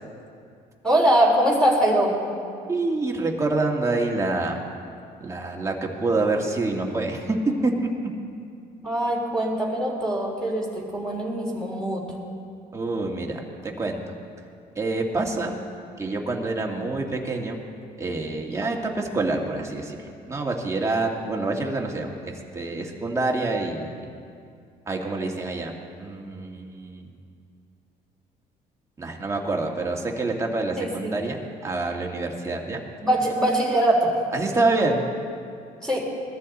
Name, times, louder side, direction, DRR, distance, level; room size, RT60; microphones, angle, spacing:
voice 1, 0.8-2.2 8.8-12.0 30.8-31.1 33.0-34.1 35.8-36.0, right 1 dB, 5° left, -4 dB, 3.7 m, -22 dB
voice 2, 2.7-4.6 5.2-7.4 7.6-7.7 12.7-14.0 14.8-15.5 16.0-17.6 18.0-20.0 20.3-24.0 24.9-25.7 26.0-27.1 29.0-32.8 34.3-35.0, right 2 dB, 15° right, 0 dB, 2.0 m, -27 dB
20.5 x 13.5 x 4.2 m, 2.4 s
cardioid pair, 110°, 17 cm